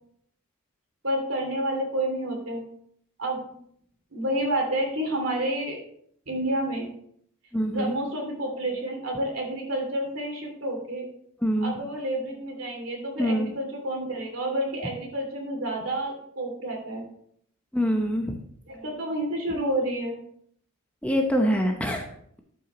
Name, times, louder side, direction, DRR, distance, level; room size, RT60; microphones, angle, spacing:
voice 1, 1.0-2.6 3.2-3.4 4.1-5.8 6.3-6.9 7.7-11.1 11.6-17.0 18.7-20.2, right 1 dB, 70° right, 1 dB, 2.7 m, -29 dB
voice 2, 7.5-8.0 11.4-11.7 13.2-13.5 17.7-18.3 21.0-22.1, equal, 5° left, 2 dB, 0.7 m, -24 dB
12.0 x 5.7 x 3.0 m, 0.67 s
head